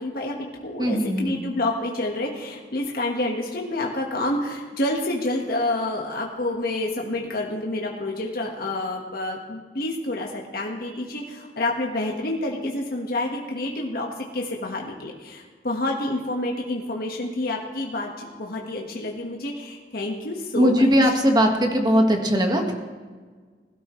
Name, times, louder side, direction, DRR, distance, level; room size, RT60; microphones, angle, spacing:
voice 1, 0.0-20.9, left 2 dB, 55° left, 0 dB, 1.5 m, -28 dB
voice 2, 0.8-1.4 20.5-22.7, equal, 25° right, 3 dB, 1.6 m, -19 dB
20.5 x 12.5 x 3.2 m, 1.5 s
head